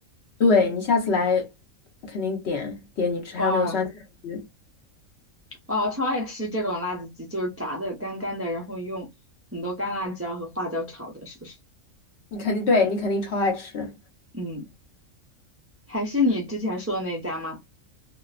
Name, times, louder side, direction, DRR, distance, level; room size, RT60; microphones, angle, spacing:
voice 1, 0.4-1.5 2.0-3.9 4.2-4.4 12.3-13.9, left 4 dB, 60° left, 1.0 m, -24 dB
voice 2, 3.4-3.8 5.7-9.1 9.5-11.6 14.3-14.7 15.9-17.6, left 1 dB, 20° right, 0.4 m, -29 dB
2.7 x 2.1 x 2.3 m
omnidirectional pair, 1.4 m